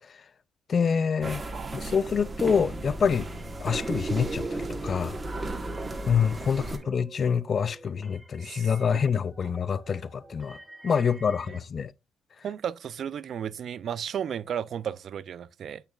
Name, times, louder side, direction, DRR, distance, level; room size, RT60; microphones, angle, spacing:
voice 1, 0.7-1.4 1.7-3.3 3.6-5.2 6.1-10.6 10.8-11.9, left 6 dB, 45° left, 0.3 m, -26 dB
sound 1, 1.2-6.8, right 2 dB, 25° right, 1.3 m, -34 dB
voice 2, 1.5-2.0 8.4-8.7 12.4-15.8, right 8 dB, 60° right, 0.4 m, -34 dB
sound 2, 2.1-11.6, right 1 dB, 5° right, 2.0 m, -50 dB
8.2 x 6.5 x 2.3 m
cardioid pair, 90°, 0 cm